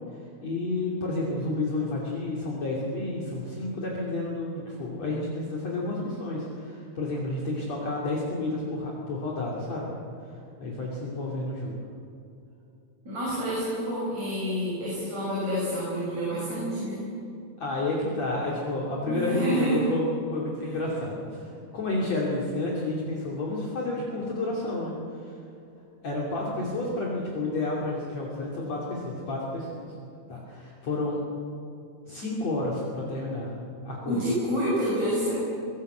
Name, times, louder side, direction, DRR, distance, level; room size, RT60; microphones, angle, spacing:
voice 1, 0.4-9.9 10.2-11.8 17.6-20.1 20.3-25.3 26.0-29.9 30.3-31.2 32.1-33.5 33.8-34.2, left 2 dB, 45° left, -4 dB, 3.7 m, -30 dB
voice 2, 13.1-17.0 19.1-19.8 20.6-20.7 34.0-35.4, equal, 45° right, -6 dB, 7.3 m, -28 dB
23.5 x 17.5 x 8.0 m, 2.6 s
omnidirectional pair, 4.4 m